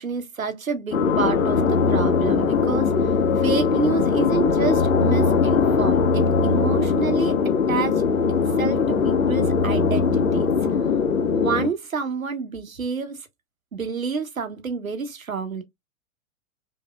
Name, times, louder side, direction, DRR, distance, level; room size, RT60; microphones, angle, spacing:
voice 1, 0.0-7.3 7.7-8.0 8.3-10.5 11.3-13.3 13.7-15.6, right 5 dB, 85° right, 1.2 m, -28 dB
sound 1, 0.9-11.7, left 5 dB, 90° left, 0.7 m, -20 dB
5.3 x 2.7 x 2.3 m
figure-of-eight pair, 100°, 40 cm